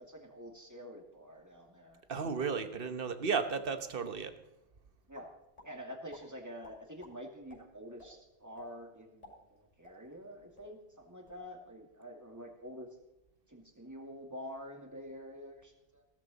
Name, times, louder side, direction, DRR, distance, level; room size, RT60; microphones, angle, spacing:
voice 1, 0.0-2.0 5.1-5.3 5.6-12.9 13.5-16.0, equal, 15° right, 1 dB, 2.3 m, -47 dB
voice 2, 2.1-4.3, right 5 dB, 55° right, 10 dB, 1.3 m, -34 dB
sound 1, 5.1-5.7 6.1-6.2 6.6-7.1 7.5-7.6 8.0-8.1 8.6-8.7 9.1-10.3 10.5-10.7 11.1-11.4, left 1 dB, 35° left, 4.9 m, -55 dB
16.5 x 14.0 x 4.1 m, 0.90 s
omnidirectional pair, 1.1 m